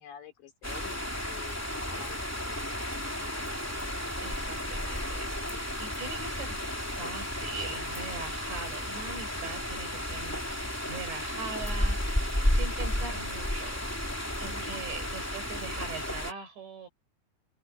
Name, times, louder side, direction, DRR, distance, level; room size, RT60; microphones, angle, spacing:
voice 1, 0.0-2.9 14.4-14.8, left 7 dB, 85° left, 5.8 m, -49 dB
sound 1, 0.6-16.3, left 1 dB, 5° left, 1.7 m, -33 dB
voice 2, 4.2-13.9 14.4-16.9, right 4 dB, 85° right, 9.4 m, -42 dB
omnidirectional pair, 5.0 m